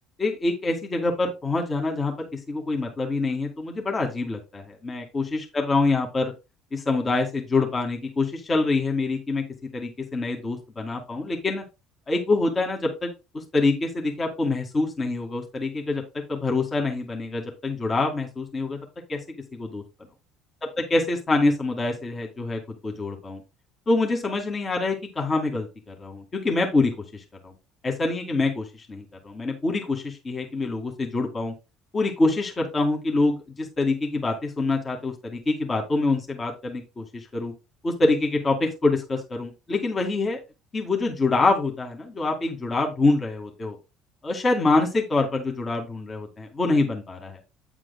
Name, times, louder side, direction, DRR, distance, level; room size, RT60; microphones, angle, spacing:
voice 1, 0.2-6.3 6.7-9.4 9.7-11.6 12.1-13.1 13.3-18.8 19.1-19.2 19.5-19.8 20.8-23.4 23.9-27.5 27.8-31.5 31.9-37.5 37.8-40.4 40.7-43.8 44.2-47.4, left 3 dB, 30° left, 2 dB, 2.1 m, -25 dB
9.1 x 7.5 x 2.3 m, 0.27 s
figure-of-eight pair, 60°, 0 cm